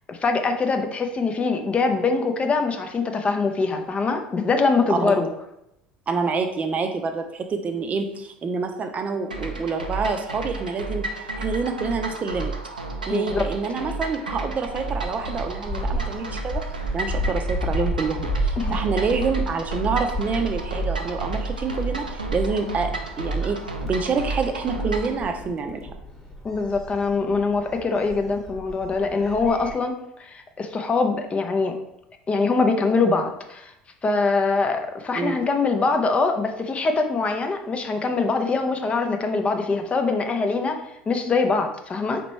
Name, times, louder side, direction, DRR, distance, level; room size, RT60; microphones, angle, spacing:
voice 1, 0.1-5.3 13.1-13.4 18.6-18.8 26.4-29.9 30.2-31.7 32.3-33.7 34.0-40.8 41.1-42.2, left 4 dB, 25° left, 5 dB, 0.5 m, -23 dB
voice 2, 4.9-5.2 6.1-11.1 11.4-12.5 13.1-16.6 16.9-22.9 23.2-25.9 35.1-35.4, right 4 dB, 35° right, 6 dB, 0.5 m, -27 dB
sound 1, 9.3-25.2, right 3 dB, 90° right, 0.4 m, -31 dB
Gull seagull, 14.3-29.8, left 1 dB, 10° left, 1.1 m, -33 dB
4.3 x 3.0 x 3.1 m, 0.80 s
figure-of-eight pair, 65°, 4 cm